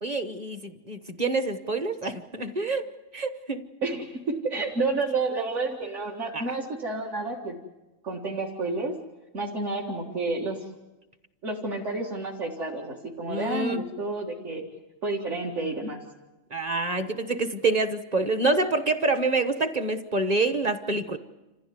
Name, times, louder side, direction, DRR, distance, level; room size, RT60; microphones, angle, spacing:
voice 1, 0.0-3.6 6.3-6.4 13.3-13.8 16.5-21.2, right 3 dB, 30° right, 9 dB, 1.1 m, -27 dB
voice 2, 3.8-7.6 8.0-8.9 9.3-10.6 11.4-14.6 15.0-16.0, right 3 dB, 60° right, -3 dB, 2.3 m, -30 dB
27.5 x 15.0 x 9.5 m, 1.1 s
omnidirectional pair, 1.4 m